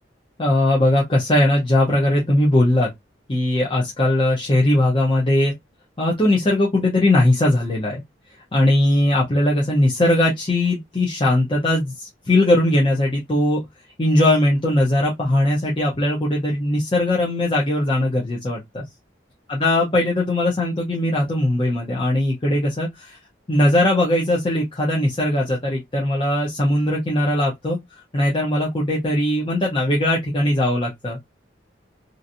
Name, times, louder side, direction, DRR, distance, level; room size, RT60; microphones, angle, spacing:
voice 1, 0.4-2.9 3.3-5.5 6.0-8.0 8.5-13.6 14.0-18.8 19.5-23.2 23.5-27.8 28.1-31.2, left 1 dB, 30° left, 0.8 m, -19 dB
3.0 x 2.5 x 2.6 m
head